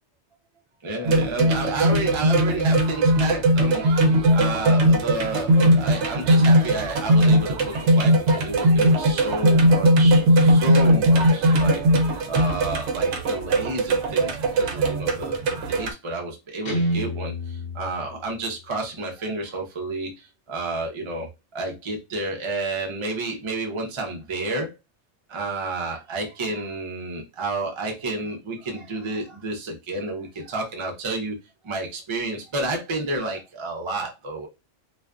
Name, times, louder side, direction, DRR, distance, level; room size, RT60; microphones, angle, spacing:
voice 1, 0.8-11.8 12.3-15.4 15.7-21.3 21.5-24.8 25.3-31.4 31.6-34.5, right 2 dB, 40° right, 0.4 m, -30 dB
sound 1, 1.0-15.9, right 1 dB, 70° right, 0.8 m, -19 dB
Guitar, 16.7-18.7, equal, 55° left, 0.8 m, -29 dB
2.4 x 2.3 x 2.2 m
omnidirectional pair, 1.3 m